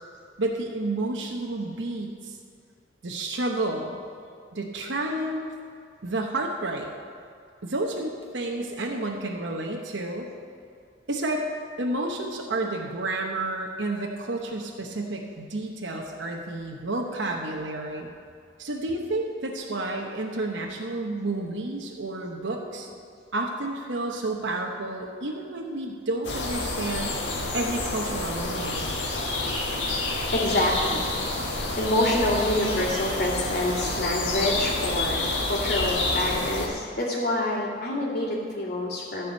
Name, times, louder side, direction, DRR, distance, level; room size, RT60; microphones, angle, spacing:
voice 1, 0.4-2.3 3.0-3.9 4.5-5.5 6.0-6.9 7.6-10.3 11.1-11.4 11.8-18.1 18.6-22.9 23.3-27.2 27.5-29.0, right 2 dB, 85° right, 0 dB, 1.0 m, -30 dB
sound 1, 26.2-36.7, left 2 dB, 80° left, 1.6 m, -28 dB
voice 2, 30.3-31.2 31.8-39.3, left 1 dB, 60° left, -10 dB, 2.4 m, -27 dB
14.0 x 5.0 x 8.2 m, 2.3 s
head